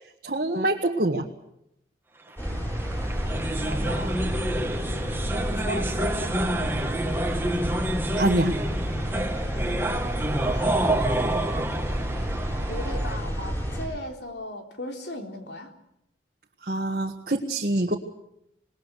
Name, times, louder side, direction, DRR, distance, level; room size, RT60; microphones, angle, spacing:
voice 1, 0.2-1.3 8.1-8.6 16.6-17.9, right 1 dB, 50° right, 0 dB, 1.7 m, -25 dB
sound 1, 2.4-13.9, equal, 10° left, 7.5 m, -30 dB
sound 2, 2.4-13.2, right 1 dB, 10° right, 1.5 m, -29 dB
voice 2, 3.6-4.2 5.6-6.4 10.5-11.3 12.7-15.7, left 1 dB, 70° left, 4 dB, 3.7 m, -37 dB
27.0 x 20.0 x 6.4 m, 0.79 s
head